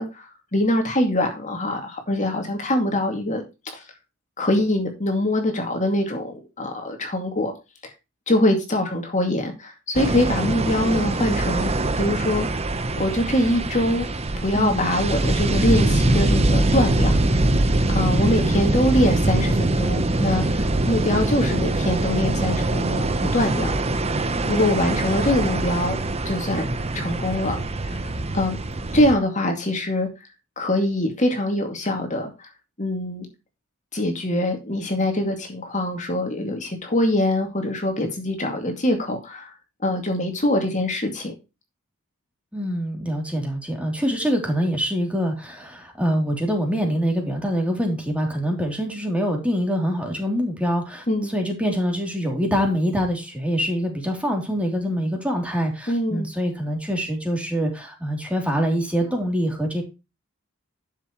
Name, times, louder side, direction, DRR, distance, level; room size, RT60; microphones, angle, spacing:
voice 1, 0.0-3.4 3.7-3.8 4.4-7.5 8.3-12.5 13.0-14.1 14.4-17.2 17.9-23.7 24.5-26.0 26.3-26.7 26.9-27.6 27.8-28.6 28.9-30.1 30.6-32.5 32.8-33.3 33.9-39.5 39.8-41.3 51.1-51.3 55.9-56.3, left 1 dB, 35° left, 4 dB, 2.4 m, -23 dB
sound 1, 9.9-29.1, right 2 dB, 30° right, 1.0 m, -23 dB
voice 2, 14.5-14.9 42.5-59.8, equal, 5° right, 2 dB, 3.1 m, -25 dB
11.5 x 7.4 x 3.1 m, 0.27 s
head